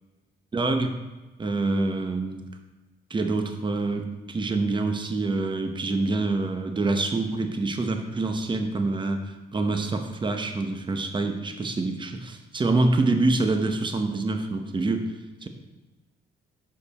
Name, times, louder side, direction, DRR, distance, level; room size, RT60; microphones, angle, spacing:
voice 1, 0.5-0.9 1.4-2.4 3.1-15.0 15.4-15.5, right 3 dB, 25° right, 6 dB, 0.8 m, -26 dB
6.7 x 5.2 x 4.1 m, 1.1 s
cardioid pair, 90°, 20 cm